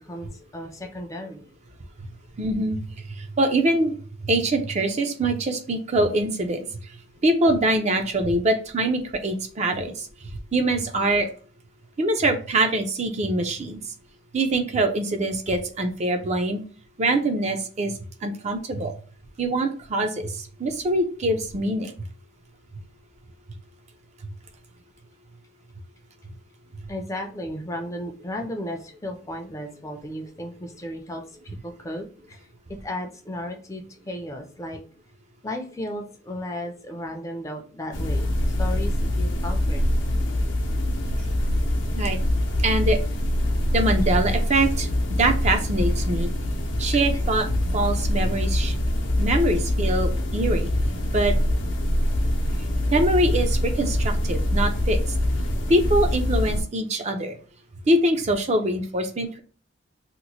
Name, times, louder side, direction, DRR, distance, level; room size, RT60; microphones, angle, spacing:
voice 1, 0.0-1.4 26.9-34.8 35.4-39.8 47.1-47.2, left 1 dB, 15° left, 3 dB, 0.5 m, -35 dB
voice 2, 2.4-2.8 3.2-3.9 4.2-6.7 7.2-10.1 10.5-11.3 12.0-13.8 14.3-16.6 17.0-17.9 18.2-18.9 19.4-21.9 42.0-42.2 42.6-43.0 43.7-46.3 46.8-47.5 47.7-48.8 49.2-50.7 51.1-51.4 52.9-55.0 55.7-57.4 57.9-59.4, right 1 dB, 35° right, 5 dB, 0.5 m, -23 dB
sound 1, 37.9-56.6, left 1 dB, 75° left, 0.6 m, -24 dB
2.9 x 2.1 x 4.0 m, 0.39 s
head